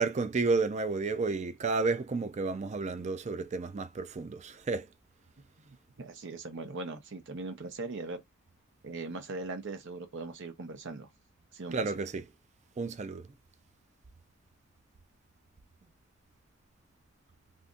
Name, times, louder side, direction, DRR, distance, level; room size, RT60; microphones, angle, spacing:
voice 1, 0.0-4.9 11.7-12.3 12.8-13.3, right 4 dB, 35° right, 0.4 m, -31 dB
voice 2, 5.6-8.2 8.8-11.1 11.5-12.0, right 3 dB, 60° right, 0.8 m, -40 dB
2.6 x 2.5 x 3.6 m
head